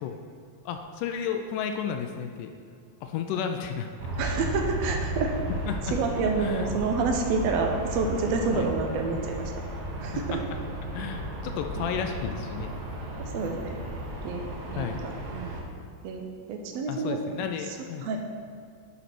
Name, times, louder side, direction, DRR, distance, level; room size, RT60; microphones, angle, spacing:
voice 1, 0.7-2.5 3.0-3.9 5.7-5.9 6.4-6.7 8.5-8.7 10.9-12.7 14.8-15.0 16.9-18.1, left 7 dB, 80° left, 5 dB, 2.0 m, -32 dB
Aircraft, 4.0-15.6, right 1 dB, 65° right, 1.3 m, -34 dB
voice 2, 4.2-5.3 5.8-9.5 10.0-10.4 11.8-11.9 13.2-13.8 14.2-14.4 14.7-15.5 16.0-16.2 16.5-17.2 17.7-17.8 18.0-18.2, right 4 dB, 80° right, 3 dB, 1.5 m, -28 dB
10.0 x 4.2 x 6.0 m, 2.3 s
omnidirectional pair, 4.0 m